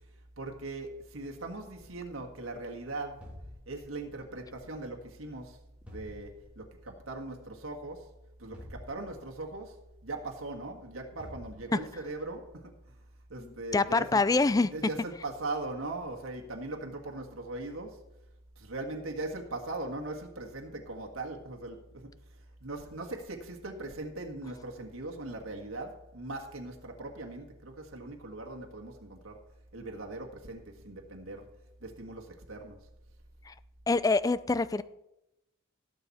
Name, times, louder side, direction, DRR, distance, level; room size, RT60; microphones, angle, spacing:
voice 1, 0.4-3.2 3.7-5.6 5.9-8.1 8.4-9.7 10.0-12.7 13.3-14.2 14.7-18.0 18.6-22.1 22.6-29.4 29.7-31.5 31.8-32.8, right 2 dB, 80° right, 1.6 m, -40 dB
sound 1, 3.2-4.3 5.9-6.8 8.5-9.6 11.2-12.2, left 1 dB, 5° right, 2.6 m, -49 dB
voice 2, 13.4-14.7 33.4-33.5 33.9-34.8, left 3 dB, 15° left, 0.3 m, -26 dB
17.0 x 7.9 x 4.2 m
head